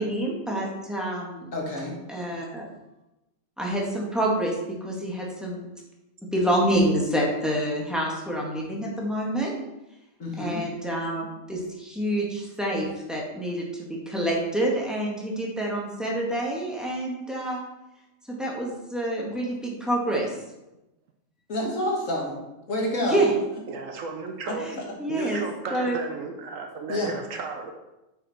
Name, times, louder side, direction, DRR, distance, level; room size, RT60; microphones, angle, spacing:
voice 1, 0.0-1.5 2.1-2.6 3.6-5.7 6.3-9.5 10.4-17.6 18.3-20.3 23.0-23.3 24.6-25.4 25.7-26.0, right 1 dB, ahead, -3 dB, 1.7 m, -27 dB
voice 2, 1.5-2.0 10.2-10.6 21.5-22.3 22.7-23.3 25.1-25.4 26.9-27.1, left 1 dB, 75° left, -2 dB, 2.1 m, -28 dB
voice 3, 23.7-24.7 25.1-27.7, right 4 dB, 80° right, 3 dB, 1.1 m, -34 dB
8.1 x 5.7 x 4.2 m, 0.97 s
omnidirectional pair, 1.4 m